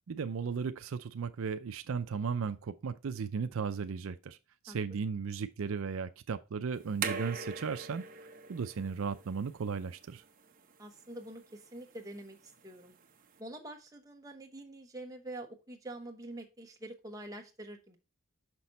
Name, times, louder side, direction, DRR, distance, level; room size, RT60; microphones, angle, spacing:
voice 1, 0.1-4.4 4.6-8.1 8.5-10.2, right 5 dB, 70° right, 0.4 m, -35 dB
sound 1, 6.7-13.4, right 5 dB, 40° right, 0.8 m, -43 dB
voice 2, 10.8-12.9 13.4-18.0, right 1 dB, 15° right, 1.1 m, -46 dB
6.1 x 5.8 x 4.1 m
head